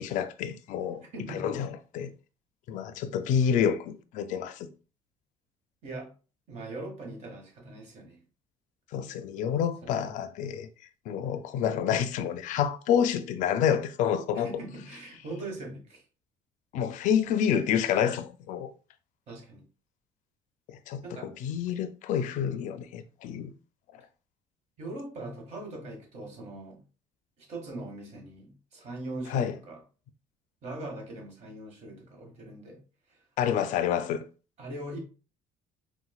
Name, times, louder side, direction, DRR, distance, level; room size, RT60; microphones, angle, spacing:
voice 1, 0.0-1.0 1.3-2.1 2.7-4.7 8.9-10.7 11.1-14.5 16.7-18.7 20.7-23.5 23.9-24.0 29.3-29.6 33.4-34.2, left 8 dB, 70° left, 0.4 m, -28 dB
voice 2, 1.1-1.5 5.8-6.1 6.5-8.2 9.8-10.1 14.3-16.0 19.3-19.6 21.0-21.3 24.8-26.8 27.4-29.8 30.6-32.8 33.1-33.2 34.6-35.0, right 2 dB, 55° right, 1.2 m, -41 dB
4.1 x 2.1 x 2.3 m
supercardioid pair, 90°, 13 cm